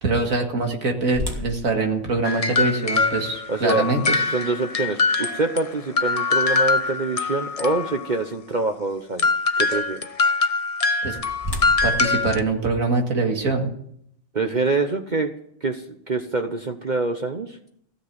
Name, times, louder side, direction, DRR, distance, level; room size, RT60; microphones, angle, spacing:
voice 1, 0.0-4.0 11.0-11.2 11.8-13.7, right 3 dB, 85° right, 3 dB, 2.4 m, -23 dB
sound 1, 1.1-7.1 7.6-7.7 8.3-8.6 10.6-13.3, left 1 dB, 15° right, 2.4 m, -37 dB
sound 2, 2.2-5.7 6.0-8.1 9.2-12.4, left 4 dB, 35° left, 0.7 m, -23 dB
voice 2, 3.5-3.9 4.3-10.0 14.3-15.3 15.6-17.6, right 3 dB, 40° right, 5 dB, 1.0 m, -25 dB
16.5 x 7.0 x 9.7 m, 0.69 s
omnidirectional pair, 1.4 m